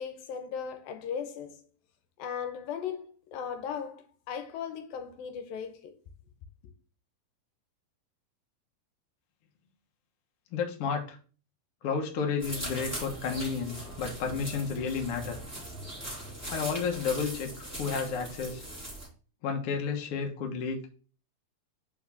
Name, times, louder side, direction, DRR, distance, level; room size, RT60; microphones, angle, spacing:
voice 1, 0.0-1.6 2.2-6.0, left 7 dB, 80° left, 2.6 m, -37 dB
voice 2, 10.5-11.2 11.8-15.4 16.5-18.6 19.4-21.0, left 5 dB, 60° left, 1.6 m, -32 dB
sound 1, 12.4-19.1, right 1 dB, 5° left, 2.1 m, -40 dB
5.3 x 4.7 x 5.7 m
omnidirectional pair, 4.2 m